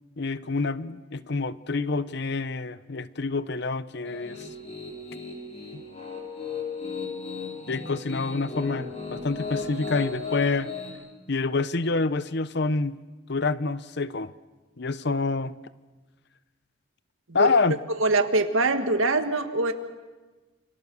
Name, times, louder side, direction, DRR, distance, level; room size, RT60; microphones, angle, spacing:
voice 1, 0.2-4.4 5.7-5.8 7.7-10.7 11.3-13.0 13.3-14.3 14.8-15.5 17.3-17.8, left 3 dB, 55° left, 0.8 m, -27 dB
Piano, 4.0-10.9, left 4 dB, 30° left, 5.6 m, -35 dB
voice 2, 18.0-19.7, right 2 dB, 80° right, 1.7 m, -23 dB
29.0 x 26.5 x 6.9 m
head